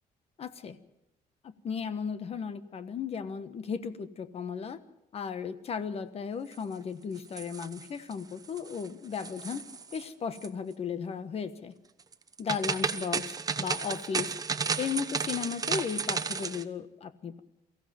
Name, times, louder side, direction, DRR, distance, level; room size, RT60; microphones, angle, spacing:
voice 1, 0.4-0.8 1.6-4.8 5.1-9.7 9.9-11.7 12.4-13.2 13.6-14.3 14.8-17.4, left 6 dB, 45° left, 12 dB, 1.3 m, -35 dB
sound 1, 7.2-8.1 8.4-8.9 9.1-10.0 10.3-10.5 12.1-16.6, right 5 dB, 25° right, 1.0 m, -33 dB
23.0 x 15.5 x 7.7 m, 0.87 s
cardioid pair, 135°, 15 cm